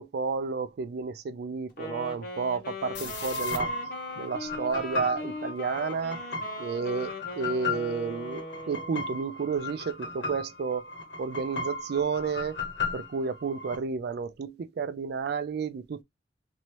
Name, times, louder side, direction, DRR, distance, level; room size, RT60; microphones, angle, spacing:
voice 1, 0.0-3.8 4.2-6.3 6.6-10.9 11.2-12.6 12.9-16.0, right 5 dB, 60° right, 0.4 m, -31 dB
Wind instrument woodwind instrument, 1.7-9.0, left 2 dB, 55° left, 1.0 m, -40 dB
sound 1, 2.9-13.8, left 3 dB, 80° left, 1.2 m, -36 dB
3.0 x 2.7 x 2.9 m
head